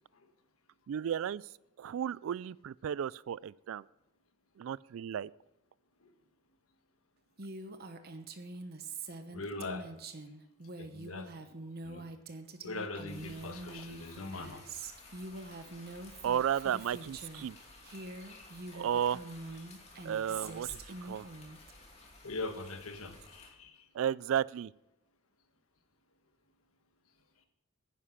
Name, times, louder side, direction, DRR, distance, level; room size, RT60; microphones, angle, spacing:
voice 1, 0.9-1.5 1.8-3.8 4.6-5.3 16.2-17.6 18.7-19.2 20.0-21.3 23.9-24.7, right 9 dB, 65° right, 23 dB, 0.3 m, -33 dB
Female speech woman speaking, 7.4-17.5 17.8-21.7, right 3 dB, 45° right, 1.0 m, -45 dB
voice 2, 9.3-9.9 10.8-11.5 11.8-12.0 12.6-14.7 22.2-23.9, left 3 dB, 80° left, 7 dB, 1.4 m, -41 dB
sound 1, 13.1-23.5, left 2 dB, 30° left, 2.7 m, -55 dB
10.0 x 9.7 x 5.9 m, 0.90 s
head